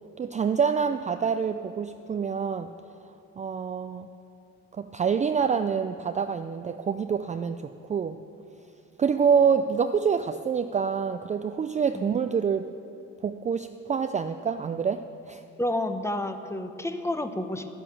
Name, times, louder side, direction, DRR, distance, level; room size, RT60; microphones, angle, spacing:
voice 1, 0.2-2.7 3.4-4.1 4.8-8.2 9.0-12.7 13.2-15.4, right 6 dB, 25° right, 9 dB, 0.4 m, -26 dB
voice 2, 15.6-17.7, left 1 dB, 10° left, 8 dB, 0.8 m, -30 dB
10.5 x 10.0 x 7.1 m, 2.6 s
cardioid pair, 90°, 30 cm